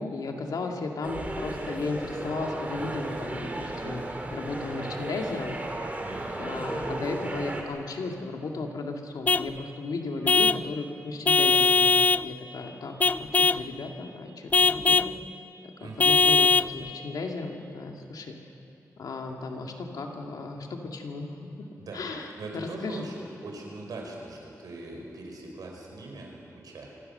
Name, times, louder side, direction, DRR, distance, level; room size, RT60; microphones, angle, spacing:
voice 1, 0.0-4.0 4.3-5.6 6.4-12.9 13.2-15.1 15.8-18.4 19.0-21.3 21.6-21.7 21.9-23.0, left 3 dB, 85° left, 2 dB, 2.3 m, -35 dB
sound 1, 1.0-7.6, right 2 dB, 25° right, 2.4 m, -34 dB
voice 2, 6.0-6.5 15.8-16.2 21.8-26.9, right 2 dB, 85° right, 0 dB, 4.9 m, -41 dB
Vehicle horn car horn honking / Truck, 9.3-9.5 10.3-10.7 11.3-12.3 13.0-13.7 14.5-15.1 16.0-16.7, left 4 dB, 25° left, 0.4 m, -21 dB
25.5 x 17.0 x 6.8 m, 3.0 s
wide cardioid pair, 135°, 6 cm